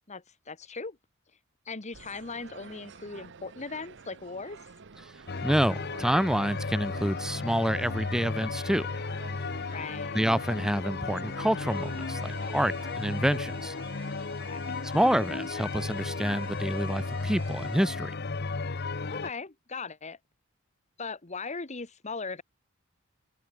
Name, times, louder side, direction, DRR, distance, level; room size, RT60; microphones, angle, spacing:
voice 1, 0.1-1.0 1.6-4.6 9.7-10.2 14.4-14.7 19.1-20.2 21.0-22.4, left 4 dB, 35° left, 1.4 m, -39 dB
sound 1, 1.9-13.2, right 5 dB, 60° right, 0.9 m, -49 dB
sound 2, 5.3-19.3, left 4 dB, 50° left, 0.9 m, -34 dB
voice 2, 5.4-8.9 10.1-13.7 14.9-18.1, equal, 5° right, 0.5 m, -28 dB
Alarm, 11.7-17.9, right 5 dB, 25° right, 4.4 m, -51 dB
open air
head